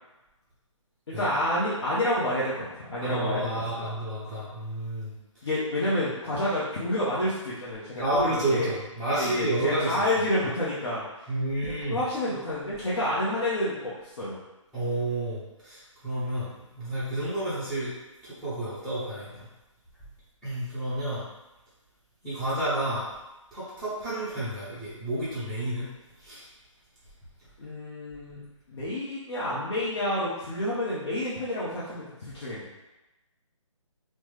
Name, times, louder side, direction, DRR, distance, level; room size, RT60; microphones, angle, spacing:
voice 1, 1.1-3.9 5.4-8.7 9.2-11.1 11.9-14.4 27.6-28.4 28.7-32.7, left 1 dB, 50° left, -9 dB, 0.8 m, -29 dB
voice 2, 3.0-5.2 8.0-10.0 11.3-12.0 14.7-16.5 16.8-17.9 18.4-19.5 20.4-21.2 22.2-23.1 23.5-25.9 26.2-26.4, right 1 dB, 5° left, -15 dB, 0.6 m, -30 dB
3.2 x 2.1 x 3.1 m, 1.0 s
figure-of-eight pair, 150°, 17 cm